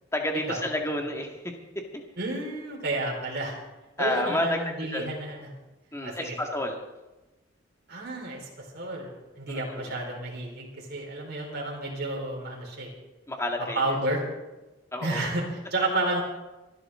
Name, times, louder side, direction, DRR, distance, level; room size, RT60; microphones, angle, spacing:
voice 1, 0.1-1.5 1.9-2.0 4.0-4.6 4.9-5.1 5.9-6.8 9.5-10.0 13.3-14.0 14.9-15.3, left 1 dB, 15° left, 2 dB, 1.9 m, -30 dB
voice 2, 2.2-3.6 4.0-5.5 6.0-6.3 7.9-8.5 8.7-12.9 13.7-14.2 15.0-16.2, right 2 dB, 55° right, -1 dB, 4.4 m, -31 dB
24.5 x 12.0 x 3.7 m, 1.1 s
head